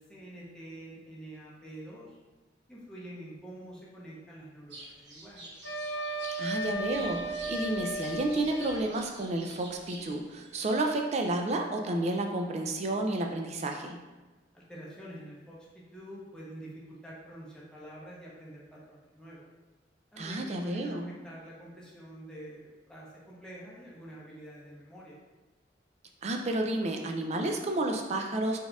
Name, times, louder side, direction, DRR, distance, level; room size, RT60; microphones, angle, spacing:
voice 1, 0.0-2.2 2.7-5.5 14.5-19.5 20.1-25.2, right 1 dB, 5° left, -6 dB, 0.8 m, -47 dB
sound 1, 4.7-11.0, right 1 dB, 75° right, 0.8 m, -48 dB
Wind instrument woodwind instrument, 5.6-8.8, right 1 dB, 85° left, 0.5 m, -35 dB
voice 2, 6.4-14.0 20.2-21.1 26.2-28.6, right 2 dB, 40° right, 3 dB, 0.4 m, -31 dB
4.2 x 3.5 x 2.3 m, 1.2 s
head